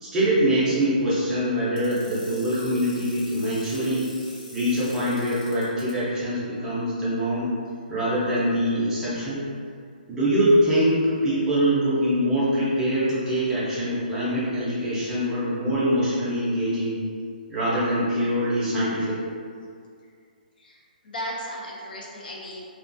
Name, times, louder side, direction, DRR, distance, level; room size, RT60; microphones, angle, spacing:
voice 1, 0.0-4.1 4.5-7.5 7.9-9.4 10.1-17.0 17.5-19.2, equal, 10° right, -11 dB, 0.5 m, -24 dB
sound 1, 1.8-5.9, left 1 dB, 45° left, 1.0 m, -44 dB
voice 2, 20.6-22.6, equal, 65° left, -3 dB, 0.5 m, -36 dB
2.4 x 2.3 x 2.5 m, 2.2 s
hypercardioid pair, 160°, 5 cm